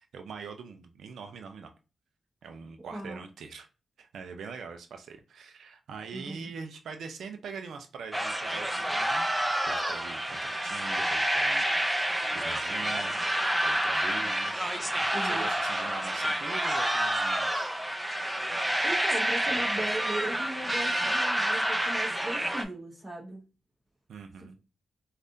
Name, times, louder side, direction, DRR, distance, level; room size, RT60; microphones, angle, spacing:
voice 1, 0.0-1.7 2.4-3.7 4.0-9.3 9.6-11.7 12.0-13.2 13.6-17.7 19.5-19.9 24.1-24.6, right 5 dB, 85° right, 6 dB, 0.4 m, -43 dB
voice 2, 2.9-3.2 6.1-6.5 15.1-15.5 18.8-23.4, right 2 dB, 25° right, -3 dB, 0.9 m, -37 dB
sound 1, 8.1-22.6, right 1 dB, 10° right, 0.5 m, -28 dB
3.4 x 2.3 x 2.6 m, 0.30 s
cardioid pair, 65°, 0 cm